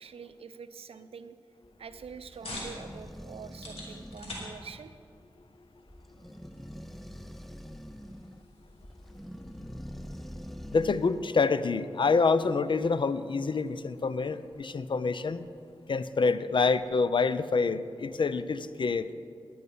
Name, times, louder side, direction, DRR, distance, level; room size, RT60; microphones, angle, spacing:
voice 1, 0.0-1.4 1.8-4.9, right 6 dB, 90° right, 11 dB, 0.5 m, -45 dB
sound 1, 1.6-11.3, equal, ahead, 0.4 m, -45 dB
sound 2, 1.8-16.9, left 1 dB, 90° left, 2.6 m, -50 dB
voice 2, 10.7-15.4 15.9-19.1, left 4 dB, 55° left, 14 dB, 0.5 m, -27 dB
10.0 x 9.4 x 5.4 m, 2.3 s
cardioid pair, 50°, 10 cm